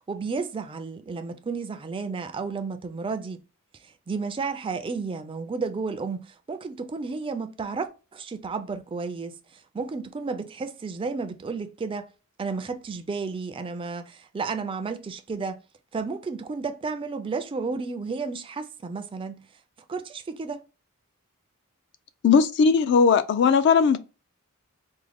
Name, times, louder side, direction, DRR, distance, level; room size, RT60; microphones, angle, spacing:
voice 1, 0.0-3.4 3.8-12.1 12.4-15.6 15.9-19.5 19.9-20.6, right 4 dB, 25° right, 0.3 m, -32 dB
voice 2, 22.2-24.0, left 6 dB, 50° left, 0.3 m, -18 dB
3.6 x 2.1 x 3.3 m
head